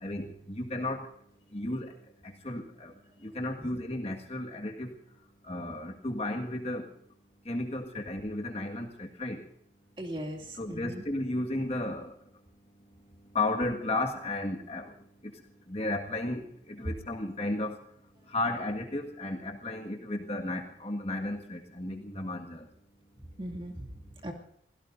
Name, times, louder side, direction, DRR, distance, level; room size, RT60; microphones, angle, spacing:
voice 1, 0.0-1.1 1.5-1.9 2.4-2.9 3.2-4.9 5.5-6.9 7.5-9.4 10.6-12.1 13.3-14.9 15.7-17.8 18.3-22.7, left 2 dB, 35° left, 2 dB, 1.8 m, -33 dB
voice 2, 10.0-11.0 23.4-23.9 24.2-24.3, equal, 30° right, 1 dB, 2.5 m, -39 dB
28.5 x 17.0 x 2.7 m, 0.69 s
head